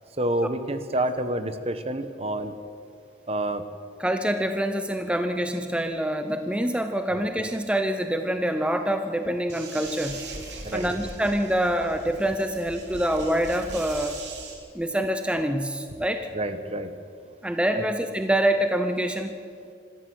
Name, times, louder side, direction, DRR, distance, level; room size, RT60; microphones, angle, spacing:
voice 1, 0.2-2.5 3.3-3.6 10.6-10.9 16.3-16.9 17.7-17.8, right 1 dB, 35° right, 10 dB, 1.1 m, -28 dB
voice 2, 4.0-10.2 10.7-14.1 14.7-16.3 17.4-19.3, right 1 dB, 5° right, 7 dB, 0.8 m, -26 dB
sound 1, 9.5-14.5, right 3 dB, 75° right, 3.7 m, -40 dB
26.0 x 13.0 x 7.9 m, 2.3 s
head